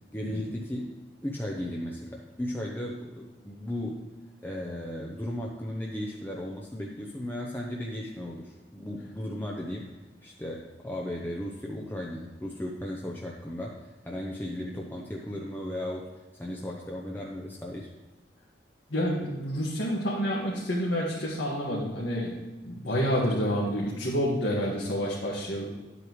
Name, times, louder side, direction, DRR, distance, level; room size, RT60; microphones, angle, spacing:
voice 1, 0.1-0.9 1.2-4.1 4.4-9.9 10.2-17.9, left 1 dB, 10° left, -2 dB, 0.7 m, -36 dB
voice 2, 18.9-22.3 22.6-25.7, equal, 80° left, -5 dB, 1.7 m, -28 dB
11.0 x 8.0 x 3.1 m, 1.2 s
head